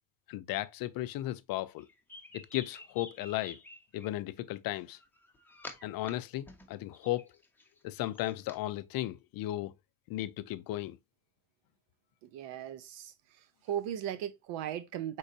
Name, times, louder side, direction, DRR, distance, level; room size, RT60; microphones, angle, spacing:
voice 1, 0.3-1.9 2.3-3.6 3.9-5.0 5.8-7.3 7.8-9.7 10.1-11.0, left 15 dB, 50° left, 0.5 m, -35 dB
sound 1, 1.8-4.1 4.9-6.1 6.4-8.6, left 2 dB, 5° left, 0.7 m, -49 dB
voice 2, 12.2-13.1 13.7-15.2, right 10 dB, 70° right, 0.8 m, -37 dB
5.3 x 3.8 x 2.6 m
cardioid pair, 115°, 45 cm